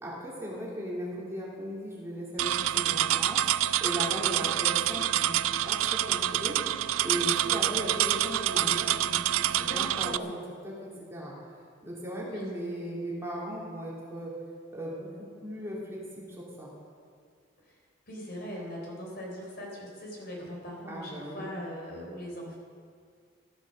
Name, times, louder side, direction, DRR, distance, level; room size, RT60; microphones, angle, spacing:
voice 1, 0.0-3.4 3.8-6.5 7.0-10.4 10.6-10.7 11.1-11.3 11.8-14.3 14.7-16.7 20.9-21.5, equal, 15° right, -6 dB, 3.1 m, -37 dB
sound 1, 2.4-10.2, right 13 dB, 90° right, 0.4 m, -27 dB
voice 2, 4.2-4.5 9.5-10.4 12.2-12.5 17.7-17.8 18.1-22.5, equal, 50° left, -2 dB, 3.9 m, -40 dB
14.5 x 11.5 x 6.6 m, 2.1 s
head